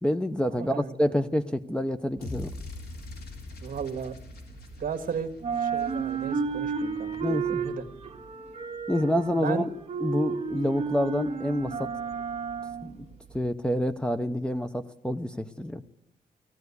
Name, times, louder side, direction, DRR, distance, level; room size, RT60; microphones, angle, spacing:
voice 1, 0.0-2.5 7.2-7.6 8.9-9.7 10.0-11.9 12.8-13.1 13.3-15.8, equal, 5° left, 10 dB, 0.8 m, -27 dB
voice 2, 0.5-1.2 3.6-4.1 4.8-5.3 5.6-7.8 9.3-9.7, right 7 dB, 55° right, 6 dB, 1.7 m, -35 dB
sound 1, 2.2-6.4, left 2 dB, 75° left, 3.5 m, -42 dB
sound 2, 2.2-5.0 5.3-13.5, right 5 dB, 35° right, 1.8 m, -33 dB
18.5 x 15.0 x 9.6 m, 0.84 s
wide cardioid pair, 145°, 17 cm